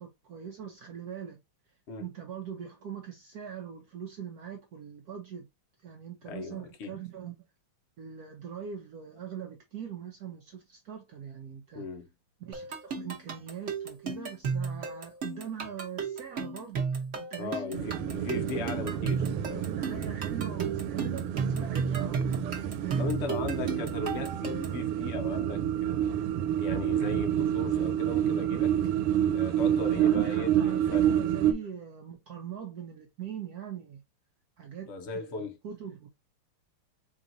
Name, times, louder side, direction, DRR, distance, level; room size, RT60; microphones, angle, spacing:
voice 1, 0.0-1.4 2.0-5.5 5.8-7.4 8.0-11.8 12.4-17.6 18.5-19.4 19.7-22.2 22.5-23.1 29.9-34.0 34.6-36.1, right 8 dB, 75° right, 0.9 m, -42 dB
voice 2, 6.2-7.0 11.7-12.1 17.4-19.7 22.6-26.2 26.6-28.8 29.3-31.1 31.4-31.6 34.9-35.6, left 3 dB, 85° left, 0.6 m, -37 dB
sound 1, 12.5-24.8, right 5 dB, 45° right, 1.0 m, -34 dB
sound 2, 17.7-31.5, right 10 dB, 90° right, 1.5 m, -29 dB
4.1 x 3.5 x 2.6 m
omnidirectional pair, 2.4 m